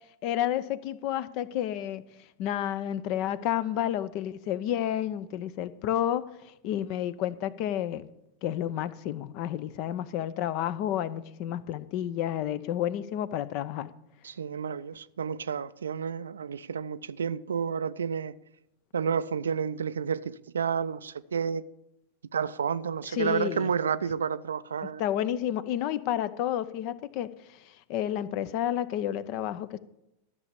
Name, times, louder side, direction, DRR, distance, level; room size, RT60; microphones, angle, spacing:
voice 1, 0.2-2.1 2.4-8.1 8.4-13.9 23.1-23.7 25.0-29.8, left 11 dB, 45° left, 0.6 m, -30 dB
voice 2, 14.2-18.3 18.9-21.6 22.3-25.0, right 6 dB, 70° right, 0.4 m, -30 dB
13.5 x 6.9 x 6.7 m
figure-of-eight pair, 90°, 0 cm